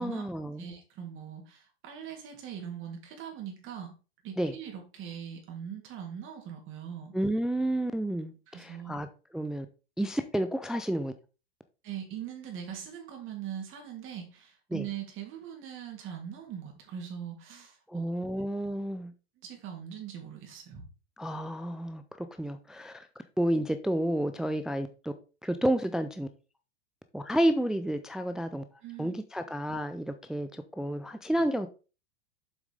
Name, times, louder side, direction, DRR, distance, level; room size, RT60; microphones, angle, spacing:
voice 1, 0.0-0.7 4.4-4.5 7.1-9.1 9.3-9.7 10.0-11.1 14.7-14.9 17.9-19.1 21.2-23.1 23.4-25.1 25.4-26.3 27.1-28.6 29.0-31.7, right 1 dB, ahead, 0.4 m, -30 dB
voice 2, 0.6-3.9 4.2-7.1 8.5-9.0 11.8-18.1 19.4-20.8 28.8-29.2, right 9 dB, 40° right, 3.0 m, -41 dB
7.5 x 5.9 x 3.7 m
hypercardioid pair, 100°, 33 cm